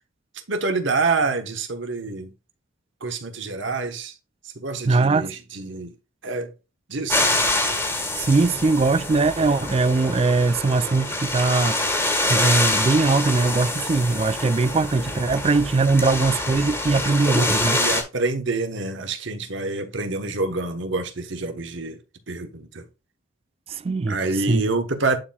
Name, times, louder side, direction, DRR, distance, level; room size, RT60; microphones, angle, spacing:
voice 1, 0.3-2.3 3.0-4.2 4.4-5.9 6.2-6.5 6.9-7.3 17.8-22.0 22.3-22.9 24.1-25.2, right 3 dB, 60° right, 1.2 m, -27 dB
voice 2, 4.9-5.3 8.2-11.8 12.3-17.8 23.7-24.2 24.5-24.6, right 3 dB, 30° right, 0.3 m, -21 dB
sound 1, 7.1-18.0, left 2 dB, 10° left, 1.6 m, -25 dB
11.0 x 4.4 x 2.3 m
head